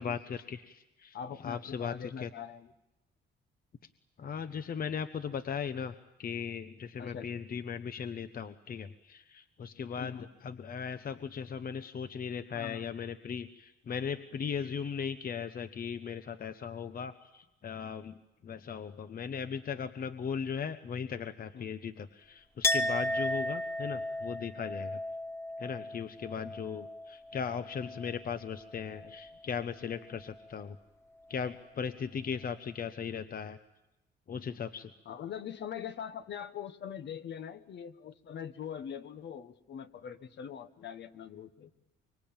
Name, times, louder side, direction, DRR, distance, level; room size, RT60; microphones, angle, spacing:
voice 1, 0.0-1.2 1.4-2.3 4.2-5.9 6.2-10.2 10.4-18.2 18.4-25.0 25.6-30.8 31.3-33.6 34.3-34.9, left 7 dB, 45° left, 10 dB, 1.1 m, -38 dB
voice 2, 1.1-2.7 7.0-7.3 9.9-10.3 12.5-12.9 21.5-21.7 26.3-26.5 27.8-27.9 29.0-29.2 33.1-33.2 35.0-41.7, left 8 dB, 65° left, 10 dB, 1.5 m, -42 dB
Chink clink, 22.6-28.2 28.4-29.3, left 1 dB, 15° left, 1.9 m, -35 dB
25.0 x 23.5 x 8.9 m, 0.95 s
cardioid pair, 90°, 20 cm